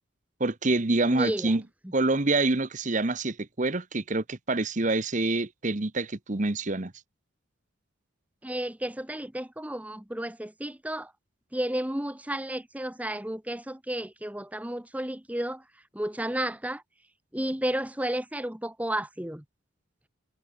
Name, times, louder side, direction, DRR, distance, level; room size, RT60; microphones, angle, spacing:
voice 1, 0.4-1.6 1.9-6.9, right 2 dB, 35° right, 1.0 m, -26 dB
voice 2, 1.1-1.5 1.8-1.9 8.4-11.1 11.5-15.6 15.9-16.8 17.3-19.4, right 1 dB, 5° right, 1.1 m, -32 dB
head